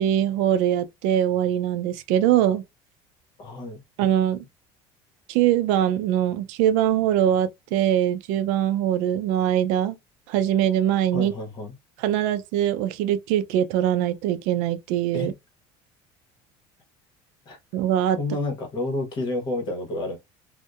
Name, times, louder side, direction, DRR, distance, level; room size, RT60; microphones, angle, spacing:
voice 1, 0.0-2.6 4.0-4.4 5.3-10.0 10.3-11.3 12.0-15.3 17.7-18.2, right 11 dB, 75° right, 0.4 m, -22 dB
voice 2, 3.4-3.8 11.1-11.7 15.1-15.3 17.5-17.6 18.2-20.2, left 2 dB, 40° left, 1.0 m, -29 dB
2.6 x 2.1 x 2.2 m
cardioid pair, 140°, 13 cm